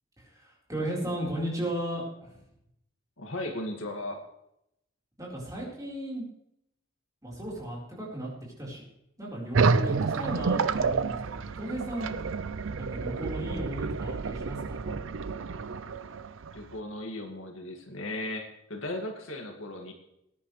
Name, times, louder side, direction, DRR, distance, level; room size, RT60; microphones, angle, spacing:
voice 1, 0.2-2.4 5.2-6.2 7.2-8.3 8.6-8.8 9.2-12.2 12.8-15.0, right 1 dB, 15° right, -4 dB, 4.3 m, -35 dB
voice 2, 3.2-4.2 16.5-19.9, left 1 dB, 70° left, 2 dB, 2.1 m, -36 dB
sound 1, 9.5-16.8, right 4 dB, 70° right, 0.5 m, -29 dB
20.0 x 10.0 x 3.3 m, 0.80 s
head